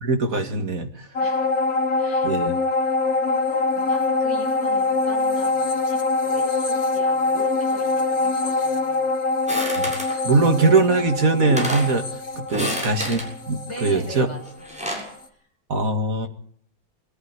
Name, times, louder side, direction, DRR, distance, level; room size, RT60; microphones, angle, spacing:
voice 1, 0.0-1.1 2.2-2.6 9.8-9.9 10.2-12.1 12.4-13.2 13.5-14.3 15.7-16.3, right 3 dB, 45° right, 5 dB, 2.2 m, -21 dB
sound 1, 1.2-14.8 15.2-15.3, left 3 dB, 45° left, 2.9 m, -24 dB
voice 2, 1.2-1.5 2.0-2.7 3.2-6.0 6.2-9.1 12.6-12.8 13.6-15.1, equal, 15° left, 2 dB, 6.2 m, -39 dB
sound 2, 9.5-10.2 11.1-11.2 11.4-11.9 12.5-13.3 14.5-15.1, equal, 5° right, 7.4 m, -29 dB
22.0 x 14.5 x 9.6 m, 0.62 s
omnidirectional pair, 2.1 m